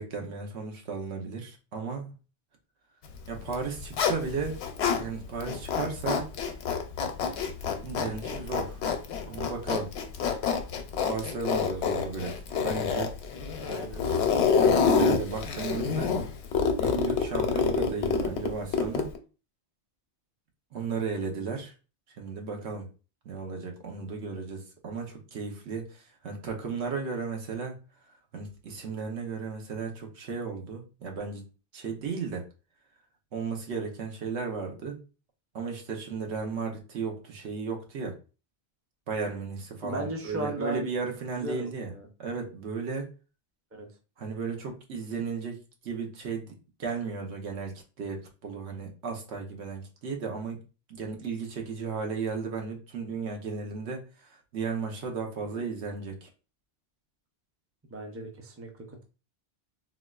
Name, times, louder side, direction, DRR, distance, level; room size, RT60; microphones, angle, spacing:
voice 1, 0.0-2.1 3.3-4.6 4.9-6.3 7.8-8.8 9.2-9.9 11.1-13.1 14.5-16.1 16.8-19.1 20.7-21.7 22.1-22.9 23.2-27.8 28.3-31.4 31.7-32.5 33.3-35.0 35.5-38.1 39.1-41.9 42.2-43.1 44.2-50.6 50.9-56.3, right 5 dB, 85° right, 2 dB, 1.1 m, -35 dB
Zipper (clothing), 3.4-5.0 5.4-19.2, left 6 dB, 85° left, 0.9 m, -27 dB
voice 2, 13.7-14.0 39.8-40.9 41.4-42.1 43.7-43.9 57.9-59.0, right 1 dB, 20° right, 2 dB, 0.5 m, -36 dB
4.0 x 2.4 x 2.3 m, 0.33 s
omnidirectional pair, 1.1 m